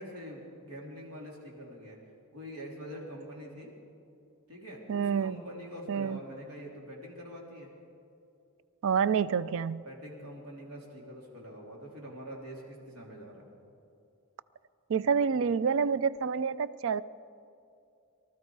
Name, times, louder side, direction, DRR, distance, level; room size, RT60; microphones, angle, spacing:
voice 1, 0.0-2.0 2.3-3.7 4.5-7.7 9.3-9.6 9.8-13.5, equal, 80° right, -2 dB, 3.3 m, -45 dB
voice 2, 4.9-5.4 5.9-6.2 8.8-9.8 14.9-17.0, right 6 dB, 60° right, 18 dB, 0.4 m, -28 dB
23.5 x 13.0 x 4.7 m, 2.6 s
head